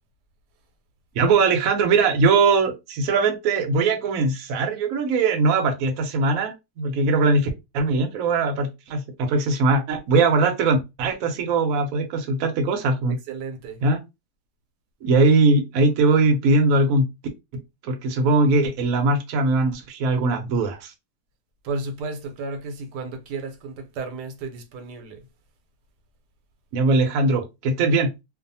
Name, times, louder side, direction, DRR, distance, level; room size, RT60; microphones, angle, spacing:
voice 1, 1.2-13.2 13.8-14.0 15.0-17.0 17.8-20.9 26.7-28.1, right 3 dB, 65° right, 1.0 m, -21 dB
voice 2, 13.1-13.8 21.6-25.2, right 3 dB, 85° right, 1.2 m, -33 dB
2.6 x 2.4 x 2.6 m
omnidirectional pair, 1.7 m